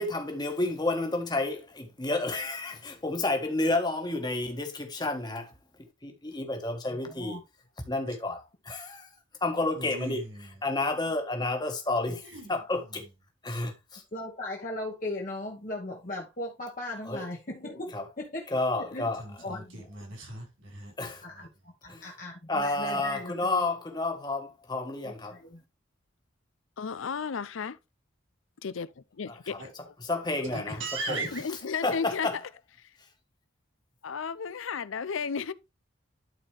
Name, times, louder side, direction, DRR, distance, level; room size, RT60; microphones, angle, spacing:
voice 1, 0.0-5.5 5.8-7.4 7.9-9.1 9.4-13.0 13.4-14.0 17.0-17.3 17.9-18.0 18.5-19.3 21.0-21.2 21.9-22.1 22.5-25.4 29.3-29.6 30.0-32.4, left 2 dB, 20° left, 1.4 m, -31 dB
voice 2, 6.8-7.4 14.1-18.6 18.9-19.1 19.4-19.9 21.2-23.6 25.3-25.6, left 1 dB, 40° left, 1.3 m, -38 dB
voice 3, 9.8-10.5 12.3-12.5 19.2-20.9 29.6-29.7 30.8-31.4, right 2 dB, 75° right, 4.6 m, -37 dB
voice 4, 26.8-27.8 28.6-28.9 29.2-29.6 29.9-30.0 31.3-32.3 34.0-35.5, left 6 dB, 75° left, 0.5 m, -33 dB
12.0 x 4.3 x 3.3 m
head